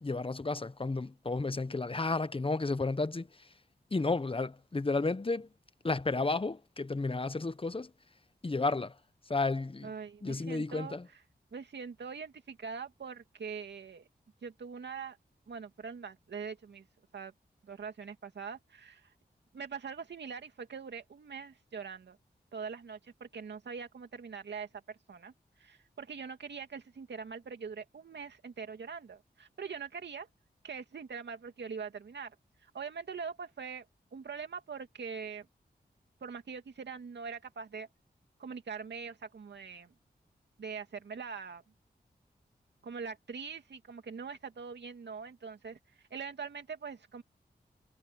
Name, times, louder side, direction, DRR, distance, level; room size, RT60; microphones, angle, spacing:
voice 1, 0.0-3.3 3.9-5.5 5.8-7.9 8.4-8.9 9.3-9.9 10.2-11.1, left 3 dB, 30° left, 1.1 m, -32 dB
voice 2, 9.8-11.0 11.5-14.1 14.4-15.2 15.5-16.9 17.1-17.3 17.6-19.1 19.5-22.2 22.5-25.3 25.6-30.3 30.6-32.4 32.6-33.9 34.1-35.5 36.2-37.9 38.4-39.9 40.6-41.6 42.8-45.8 46.1-47.2, right 5 dB, 80° right, 2.6 m, -43 dB
cardioid pair, 45°, 18 cm